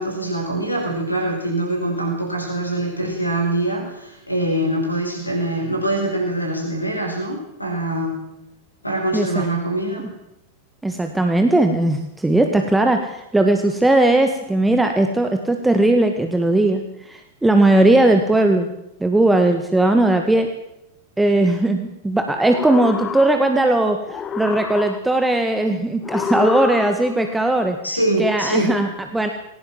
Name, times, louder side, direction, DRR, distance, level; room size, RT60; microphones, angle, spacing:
voice 1, 0.0-8.2 8.8-10.1 27.8-28.7, right 1 dB, 85° left, 2 dB, 4.9 m, -23 dB
voice 2, 9.1-9.5 10.8-18.7 19.0-20.5 21.2-27.8 28.2-29.3, right 2 dB, 5° right, 5 dB, 1.9 m, -18 dB
sound 1, 22.3-23.7 24.1-25.3 26.0-27.3, left 7 dB, 25° left, 1.2 m, -28 dB
21.0 x 18.0 x 7.5 m, 0.86 s
figure-of-eight pair, 90°, 0 cm